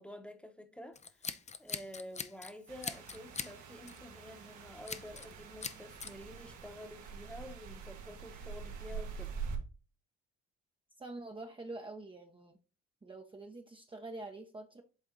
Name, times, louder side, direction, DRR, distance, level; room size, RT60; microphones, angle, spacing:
voice 1, 0.0-9.4, left 1 dB, 5° left, 1.0 m, -50 dB
Scissors, 1.0-2.5 2.8-3.5 3.9-4.1 4.9-5.3 5.6-6.1, left 5 dB, 25° left, 0.5 m, -41 dB
sound 1, 2.7-9.6, right 5 dB, 85° right, 1.5 m, -45 dB
voice 2, 11.0-12.6 13.0-14.8, right 2 dB, 15° right, 0.7 m, -46 dB
8.0 x 3.6 x 3.9 m
cardioid pair, 90°, 30 cm